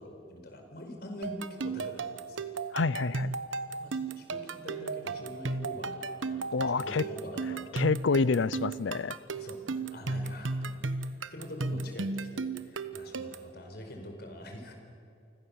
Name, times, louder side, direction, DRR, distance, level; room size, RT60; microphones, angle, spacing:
voice 1, 0.0-2.5 3.8-7.9 9.3-11.0 11.3-14.8, left 1 dB, 55° left, 5.0 m, -44 dB
sound 1, 1.2-13.5, right 3 dB, 85° right, 1.2 m, -35 dB
voice 2, 2.7-3.3 6.5-7.0 7.7-9.2, left 4 dB, 75° left, 0.6 m, -28 dB
29.0 x 25.5 x 7.4 m
head